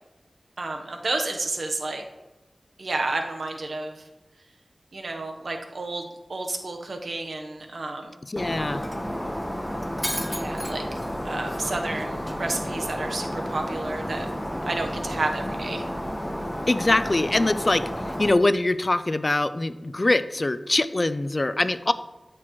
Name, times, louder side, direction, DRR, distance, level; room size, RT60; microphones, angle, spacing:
voice 1, 0.6-2.0 2.8-3.9 4.9-8.2 10.3-11.0 11.2-14.3 14.6-15.8, right 2 dB, 80° right, 3 dB, 1.0 m, -31 dB
voice 2, 8.2-8.8 16.7-21.9, left 2 dB, 40° left, 13 dB, 0.4 m, -23 dB
Shatter, 8.4-18.3, equal, 5° left, 1.1 m, -31 dB
13.0 x 6.0 x 3.1 m, 1.1 s
wide cardioid pair, 50°, 0 cm